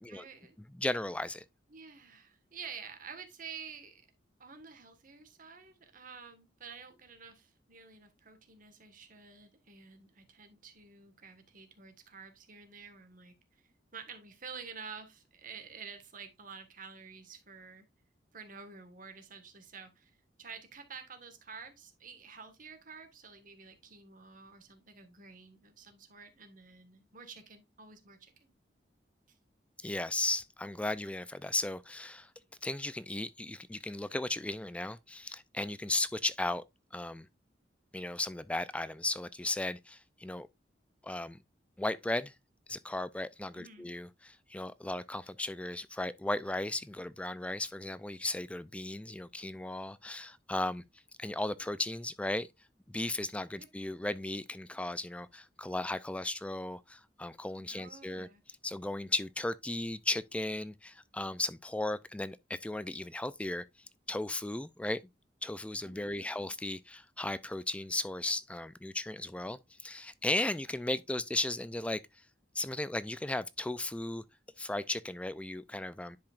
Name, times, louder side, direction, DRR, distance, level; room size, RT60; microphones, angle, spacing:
voice 1, 0.1-0.6 1.7-4.0 4.4-17.9 18.3-28.5 29.3-29.4 43.5-43.9 53.6-53.7 57.7-58.4 65.9-66.5, right 5 dB, 50° right, 1.5 m, -50 dB
voice 2, 0.7-1.4 29.8-32.3 32.6-36.6 36.9-37.3 37.9-40.5 41.0-41.4 41.8-42.3 42.7-50.8 51.2-52.5 52.9-58.3 58.6-63.6 64.1-65.0 65.4-72.0 72.6-74.2 74.6-76.2, left 2 dB, 5° left, 0.3 m, -36 dB
10.5 x 4.9 x 2.4 m
head